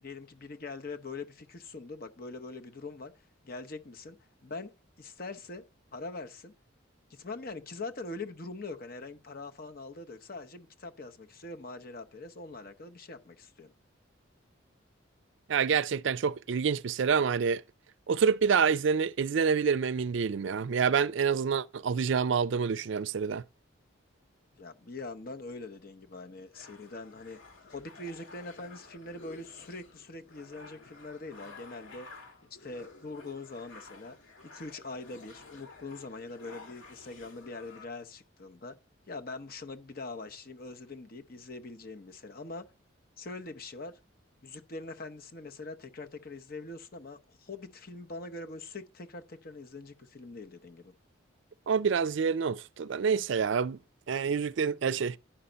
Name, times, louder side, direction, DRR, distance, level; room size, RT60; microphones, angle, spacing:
voice 1, 0.0-3.1 3.4-6.5 7.1-13.7 24.5-34.2 34.5-38.7 39.1-42.7 43.2-44.0 44.4-50.9, left 3 dB, 45° left, 0.8 m, -43 dB
voice 2, 15.5-17.6 18.1-23.4 51.7-53.8 54.1-55.2, right 6 dB, 65° right, 0.4 m, -27 dB
sound 1, 26.5-37.9, left 3 dB, 75° left, 2.2 m, -52 dB
10.0 x 5.6 x 5.1 m
head